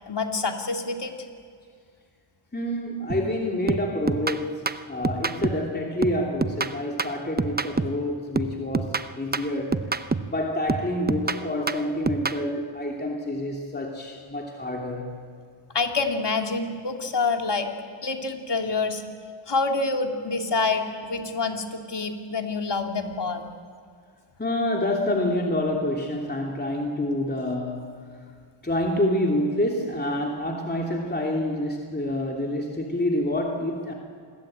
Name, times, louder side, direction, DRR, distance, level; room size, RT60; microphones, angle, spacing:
voice 1, 0.1-1.1 15.7-17.7 18.0-19.0 19.5-23.5, left 3 dB, 55° left, 4 dB, 2.7 m, -27 dB
voice 2, 2.5-9.8 10.3-15.2 24.4-28.2 28.6-33.9, left 1 dB, 20° left, 0 dB, 3.0 m, -27 dB
sound 1, 3.1-3.4 3.7-5.7 6.0-8.1 8.4-10.4 10.7-12.4, right 4 dB, 20° right, 0.7 m, -28 dB
28.0 x 21.0 x 8.8 m, 2.1 s
wide cardioid pair, 95°, 49 cm